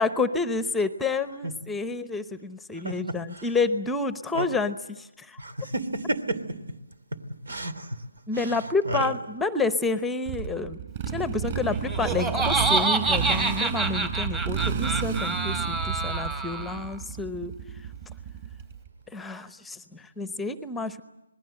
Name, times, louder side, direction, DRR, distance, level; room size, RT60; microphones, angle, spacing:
voice 1, 0.0-5.4 8.3-10.8 11.1-17.5 19.1-21.0, left 3 dB, 5° left, 12 dB, 0.8 m, -29 dB
voice 2, 2.8-3.5 4.3-4.5 5.4-6.4 7.5-8.0 8.3-9.1, right 2 dB, 80° right, 14 dB, 3.1 m, -31 dB
Motorcycle, 10.3-18.9, right 7 dB, 40° right, 6.0 m, -31 dB
Laughter, 11.7-17.0, right 3 dB, 15° right, 1.4 m, -27 dB
27.0 x 20.5 x 7.8 m, 0.93 s
figure-of-eight pair, 155°, 0 cm